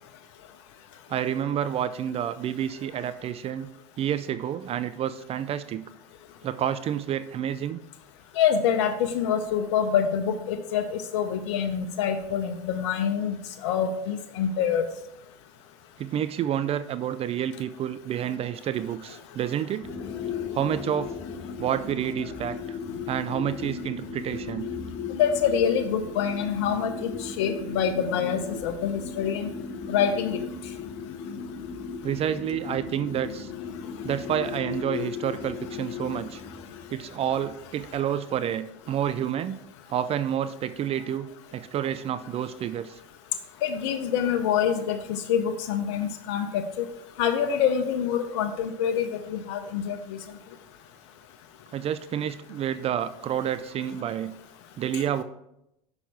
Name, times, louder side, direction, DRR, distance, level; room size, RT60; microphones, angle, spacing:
voice 1, 1.1-3.7 4.0-5.8 6.4-7.8 16.0-19.9 20.5-21.1 21.6-22.8 23.1-24.7 32.0-33.5 34.0-36.4 36.9-39.6 39.9-43.0 51.7-54.3 54.8-55.2, right 10 dB, 40° right, 13 dB, 0.4 m, -29 dB
voice 2, 8.4-13.4 13.6-14.8 25.1-29.5 29.9-30.4 43.6-46.8 47.2-50.0 54.9-55.0, left 8 dB, 75° left, 8 dB, 0.6 m, -26 dB
sound 1, 19.8-38.0, left 6 dB, 40° left, 1.1 m, -36 dB
6.4 x 5.3 x 4.7 m, 0.83 s
hypercardioid pair, 80°, 15 cm